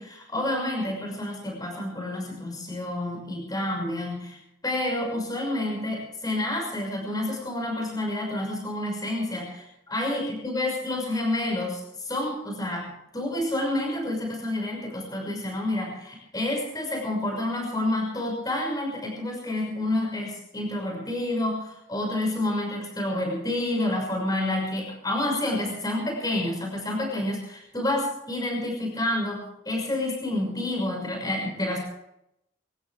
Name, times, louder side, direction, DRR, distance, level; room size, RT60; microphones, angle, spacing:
voice 1, 0.0-31.8, left 1 dB, 20° left, 0 dB, 6.2 m, -29 dB
26.0 x 14.0 x 3.6 m, 0.80 s
head